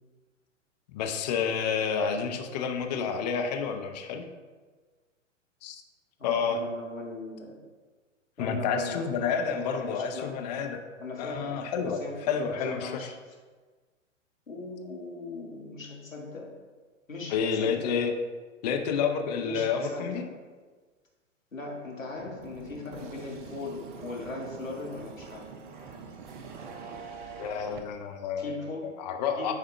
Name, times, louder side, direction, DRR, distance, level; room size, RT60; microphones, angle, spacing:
voice 1, 0.9-4.2 5.6-5.8 6.2-6.6 8.4-10.8 11.2-12.0 12.3-13.1 17.3-18.1 18.6-20.2 27.4-28.5 29.0-29.5, left 6 dB, 35° left, 5 dB, 0.6 m, -29 dB
voice 2, 6.2-7.5 8.4-10.3 11.0-13.4 14.5-16.4 17.1-17.9 19.4-20.2 21.5-25.5 28.4-28.9 29.3-29.5, left 3 dB, 80° left, -2 dB, 1.7 m, -39 dB
sound 1, 22.2-27.8, right 5 dB, 40° right, 0.7 m, -44 dB
9.6 x 3.6 x 3.2 m, 1.4 s
figure-of-eight pair, 105°, 39 cm